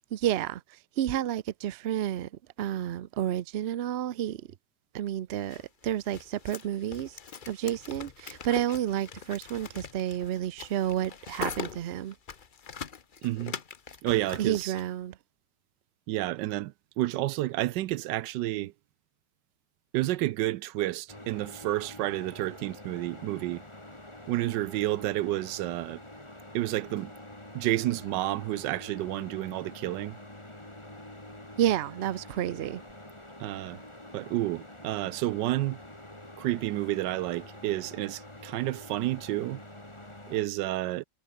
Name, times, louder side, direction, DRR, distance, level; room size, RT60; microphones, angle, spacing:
voice 1, 0.1-0.6 1.0-2.3 2.6-4.4 4.9-7.1 7.5-12.1 14.4-15.2 31.6-32.8, right 11 dB, 70° right, 0.6 m, -30 dB
sound 1, 5.4-14.8, left 6 dB, 40° left, 0.8 m, -42 dB
voice 2, 13.2-13.6 14.0-14.7 16.1-18.7 19.9-23.6 24.3-26.0 26.5-27.1 27.5-30.2 33.4-33.8 34.1-35.8 36.4-39.6 40.3-41.0, right 16 dB, 85° right, 1.2 m, -30 dB
sound 2, 21.1-40.5, left 1 dB, 15° left, 3.8 m, -47 dB
omnidirectional pair, 1.9 m